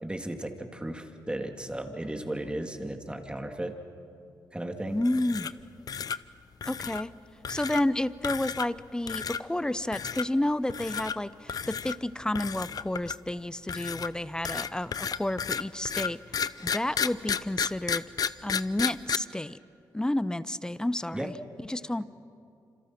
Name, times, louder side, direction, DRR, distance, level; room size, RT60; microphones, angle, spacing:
voice 1, 0.0-3.7 4.5-5.0 21.1-21.3, right 1 dB, 15° right, 5 dB, 2.4 m, -35 dB
voice 2, 4.9-5.5 6.7-7.1 7.5-16.2 16.6-18.1 18.4-19.6 19.9-21.3 21.7-22.0, left 1 dB, 10° left, 16 dB, 0.7 m, -30 dB
sound 1, 5.0-5.6 5.9-6.2 6.6-7.0 7.5-7.8 8.2-8.8 9.1-9.4 9.9-10.3 10.7-11.2 11.5-12.0 12.4-13.3 13.7-19.2, left 7 dB, 55° left, 0.6 m, -32 dB
27.5 x 26.5 x 6.0 m, 2.5 s
cardioid pair, 65°, 8 cm